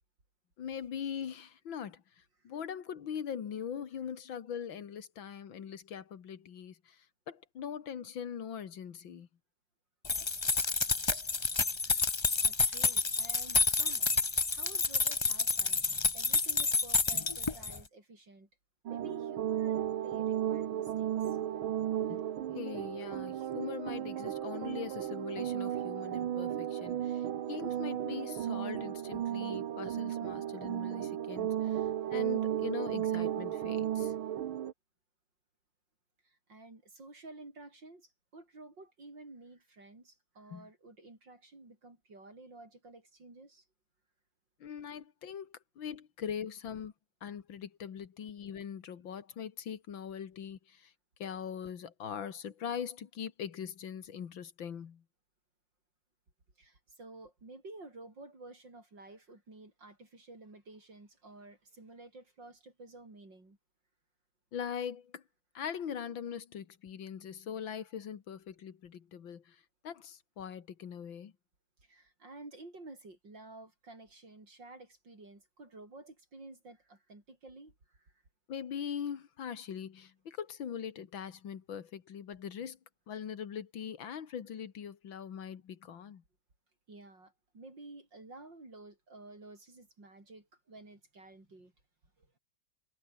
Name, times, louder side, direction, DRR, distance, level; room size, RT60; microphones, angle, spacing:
voice 1, 0.6-9.3 22.1-22.2 22.5-34.1 40.5-40.7 44.6-46.9 47.2-50.9 51.2-55.0 64.5-65.2 65.5-71.3 78.5-82.8 83.1-86.2, left 8 dB, 75° left, 2.3 m, -41 dB
sound 1, 10.0-17.8, left 3 dB, 30° left, 0.5 m, -29 dB
voice 2, 11.0-11.3 11.8-12.2 12.4-14.0 14.5-15.8 16.1-18.5 18.9-21.4 36.2-43.7 56.6-63.6 71.8-78.1 86.9-91.7 92.2-92.4, right 2 dB, 65° right, 7.4 m, -52 dB
sound 2, 18.9-34.7, right 10 dB, 85° right, 2.0 m, -34 dB
omnidirectional pair, 2.2 m